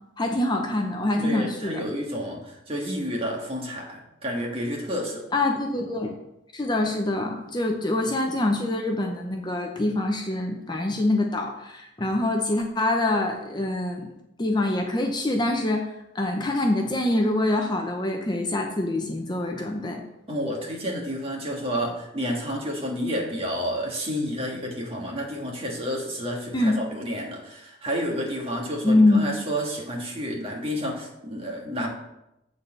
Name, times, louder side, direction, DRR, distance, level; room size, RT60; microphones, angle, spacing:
voice 1, 0.2-1.8 5.3-6.1 6.5-14.1 14.4-20.0 26.5-26.7 28.8-29.3, left 2 dB, 20° left, 2 dB, 0.7 m, -25 dB
voice 2, 1.2-5.2 20.3-31.9, equal, 30° right, -1 dB, 1.6 m, -30 dB
8.0 x 4.1 x 6.6 m, 0.88 s
head